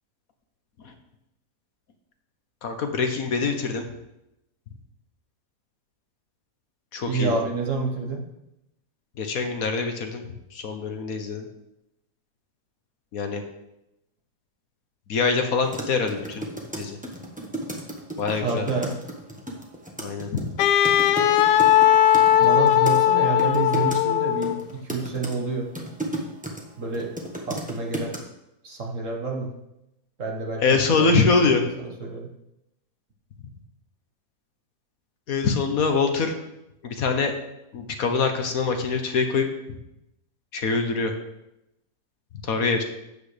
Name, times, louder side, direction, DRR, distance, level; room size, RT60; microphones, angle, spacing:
voice 1, 2.6-3.9 6.9-7.4 9.2-10.2 10.5-11.5 13.1-13.4 15.1-16.5 16.7-17.0 18.2-18.7 20.0-20.5 30.6-31.6 35.3-36.3 36.8-37.3 37.7-39.8 40.5-41.1 42.4-42.8, left 4 dB, 65° left, 5 dB, 1.4 m, -24 dB
voice 2, 7.1-8.2 18.4-19.0 22.4-25.7 26.8-27.1 27.5-28.1 28.6-29.5 30.2-31.1 31.5-32.3, right 4 dB, 50° right, 1 dB, 1.7 m, -28 dB
sound 1, 15.6-23.0 23.4-24.0 24.4-26.6 26.9-28.2, right 1 dB, 5° right, 1.2 m, -34 dB
Wind instrument woodwind instrument, 20.6-24.6, left 11 dB, 85° left, 1.2 m, -18 dB
12.0 x 8.5 x 3.4 m, 0.88 s
omnidirectional pair, 1.7 m